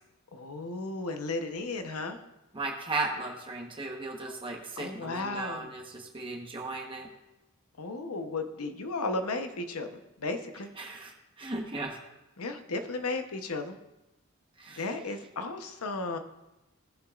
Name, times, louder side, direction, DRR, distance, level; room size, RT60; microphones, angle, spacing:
voice 1, 0.3-2.2 4.2-4.3 4.8-5.7 7.8-10.7 12.4-13.8 14.8-16.2, left 3 dB, 90° left, 7 dB, 0.9 m, -34 dB
voice 2, 2.5-7.1 10.8-11.1 11.4-12.0 14.6-14.9, right 3 dB, 25° right, 0 dB, 1.1 m, -36 dB
17.0 x 6.9 x 2.4 m, 0.97 s
head